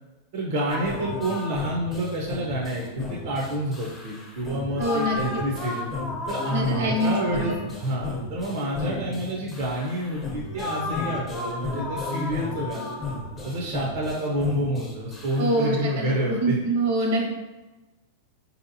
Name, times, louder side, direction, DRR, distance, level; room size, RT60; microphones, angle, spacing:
voice 1, 0.3-5.9 6.3-12.9 13.4-16.6, equal, 55° right, -3 dB, 0.6 m, -28 dB
sound 1, 0.7-16.4, left 2 dB, 15° left, 0.7 m, -33 dB
voice 2, 4.8-5.2 6.5-7.5 15.4-17.4, right 1 dB, 75° right, 0 dB, 1.0 m, -25 dB
4.3 x 2.8 x 2.6 m, 1.1 s
supercardioid pair, 145°, 0 cm